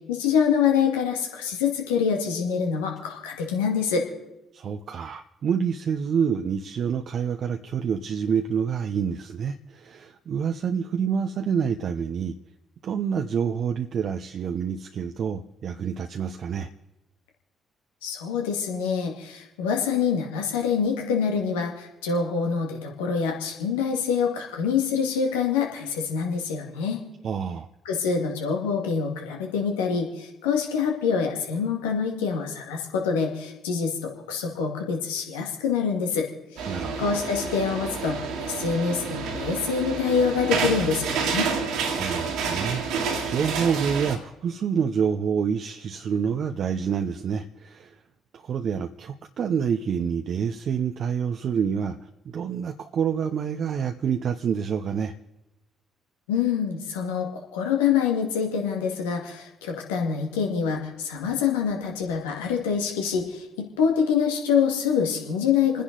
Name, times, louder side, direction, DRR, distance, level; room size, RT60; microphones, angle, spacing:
voice 1, 0.1-4.1 18.0-27.0 27.9-41.5 56.3-65.8, left 6 dB, 85° left, 1 dB, 1.9 m, -26 dB
voice 2, 4.5-12.4 12.8-16.7 27.2-27.7 36.7-37.2 41.9-42.8 43.2-48.0 48.3-55.1, right 7 dB, 60° right, 5 dB, 0.7 m, -27 dB
sound 1, 36.6-44.2, right 5 dB, 75° right, 2.2 m, -29 dB
29.0 x 10.0 x 4.0 m, 0.92 s
hypercardioid pair, 50°, 0 cm